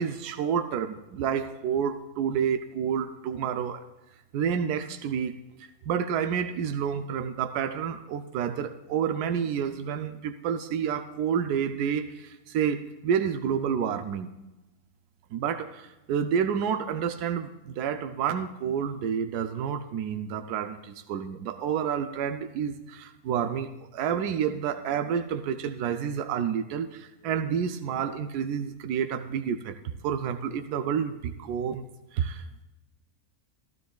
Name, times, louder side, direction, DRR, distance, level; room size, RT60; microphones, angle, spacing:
voice 1, 0.0-3.8 4.3-14.3 15.3-29.8 30.0-31.8 32.1-32.6, right 7 dB, 90° right, 8 dB, 1.1 m, -29 dB
15.0 x 12.0 x 2.3 m, 1.0 s
omnidirectional pair, 1.6 m